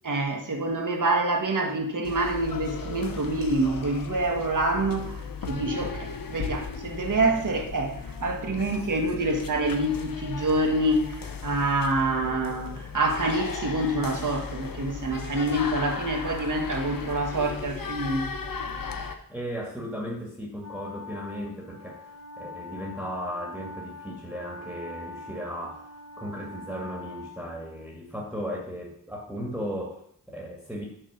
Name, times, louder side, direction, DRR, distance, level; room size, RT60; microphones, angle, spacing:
voice 1, 0.0-18.2, right 2 dB, 60° right, 3 dB, 1.7 m, -26 dB
sound 1, 2.0-19.1, left 5 dB, 75° left, 1.0 m, -36 dB
voice 2, 19.3-22.1 22.4-25.9 26.2-30.8, equal, 5° right, -1 dB, 2.1 m, -36 dB
Wind instrument woodwind instrument, 20.6-28.1, left 2 dB, 45° left, 1.3 m, -43 dB
6.4 x 6.3 x 6.4 m, 0.67 s
cardioid pair, 50°, 35 cm